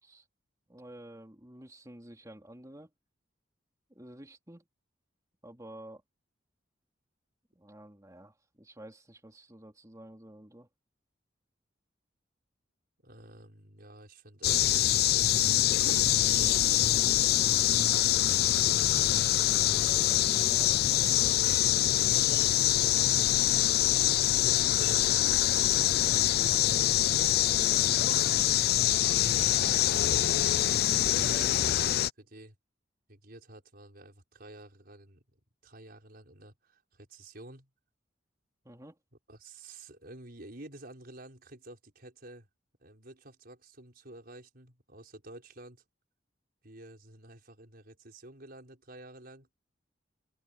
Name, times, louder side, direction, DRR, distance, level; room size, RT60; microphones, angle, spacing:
voice 1, 0.7-2.9 3.9-4.6 5.4-6.0 7.5-10.7 20.2-21.4 31.3-31.8 38.6-39.0, right 1 dB, 20° right, 3.3 m, -50 dB
voice 2, 13.0-14.8 15.7-17.9 18.8-19.9 22.0-25.5 25.9-26.7 27.4-29.3 30.9-32.6 33.1-35.2 35.6-37.7 39.3-42.5 42.8-45.8 46.6-49.5, right 2 dB, 55° right, 5.8 m, -51 dB
sound 1, 14.4-32.1, left 12 dB, 55° left, 0.4 m, -25 dB
head